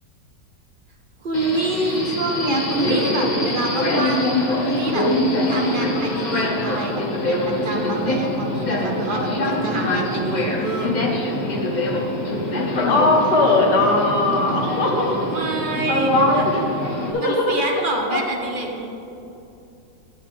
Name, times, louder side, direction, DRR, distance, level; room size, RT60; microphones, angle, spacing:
voice 1, 1.2-5.1 5.5-7.0 7.3-11.0 15.3-16.4 17.2-18.9, right 2 dB, 45° right, 1 dB, 0.7 m, -26 dB
Subway metro underground, 1.3-17.1, left 1 dB, 35° left, 0.7 m, -24 dB
voice 2, 12.7-15.1 15.9-16.6 17.0-17.6 18.1-18.3, left 2 dB, 65° left, 0 dB, 1.7 m, -19 dB
10.0 x 8.1 x 3.4 m, 2.8 s
omnidirectional pair, 1.9 m